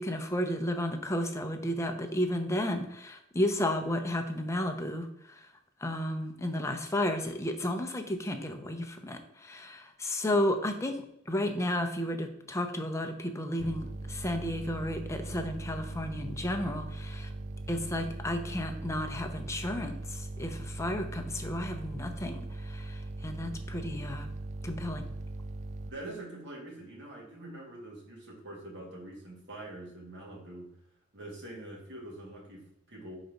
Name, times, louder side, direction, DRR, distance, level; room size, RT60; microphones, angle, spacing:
voice 1, 0.0-5.5 5.8-17.3 17.7-24.3 24.6-25.0, left 1 dB, 15° left, 5 dB, 0.6 m, -33 dB
sound 1, 13.6-25.9, right 2 dB, 35° right, 0.3 m, -40 dB
voice 2, 25.9-30.7 31.1-33.2, right 1 dB, 55° right, -3 dB, 2.0 m, -44 dB
4.5 x 4.0 x 5.2 m, 0.75 s
head